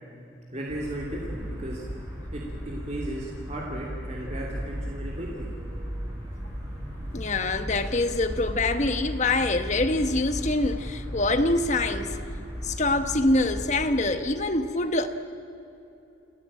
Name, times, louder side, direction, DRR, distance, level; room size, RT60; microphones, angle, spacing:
voice 1, 0.5-1.8 2.3-5.5, right 1 dB, 35° right, 2.9 m, -35 dB
sound 1, 0.7-13.9, equal, 15° right, 6.2 m, -36 dB
voice 2, 7.1-12.3 12.6-15.1, left 2 dB, 35° left, 1.2 m, -25 dB
27.5 x 15.5 x 8.9 m
head